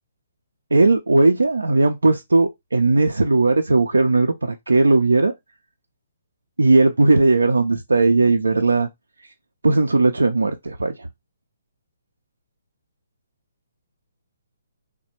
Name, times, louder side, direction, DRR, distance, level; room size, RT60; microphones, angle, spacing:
voice 1, 0.7-5.3 6.6-8.9 9.6-11.1, right 3 dB, 80° right, 0.4 m, -17 dB
3.2 x 2.2 x 4.3 m
figure-of-eight pair, 135°, 0 cm